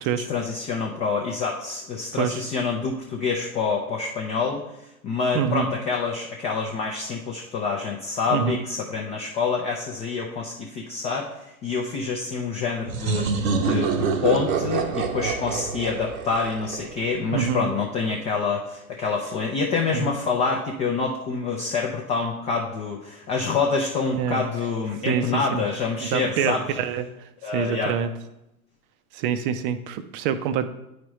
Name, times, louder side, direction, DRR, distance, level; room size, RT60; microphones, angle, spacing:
voice 1, 0.3-4.6 5.0-26.6 27.4-28.0, left 4 dB, 15° left, 0 dB, 0.4 m, -27 dB
voice 2, 5.3-5.7 8.3-8.6 17.3-17.7 19.9-20.1 24.2-24.4 25.1-25.6 26.0-27.0 27.5-28.1 29.1-30.7, right 8 dB, 35° right, 11 dB, 0.6 m, -26 dB
sound 1, 12.9-17.4, right 5 dB, 60° right, 1.0 m, -26 dB
9.2 x 5.0 x 3.1 m, 0.88 s
hypercardioid pair, 110°, 45 cm